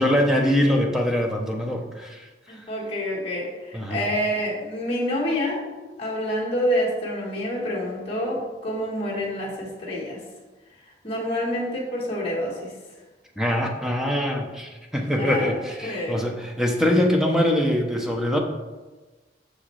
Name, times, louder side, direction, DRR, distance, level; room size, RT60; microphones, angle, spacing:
voice 1, 0.0-2.3 3.7-4.1 13.4-18.4, equal, 5° right, 1 dB, 0.7 m, -23 dB
voice 2, 2.5-5.6 6.0-10.2 11.0-12.7 15.1-15.5 15.8-16.2, equal, 30° left, -5 dB, 1.5 m, -27 dB
6.5 x 6.2 x 3.2 m, 1.2 s
head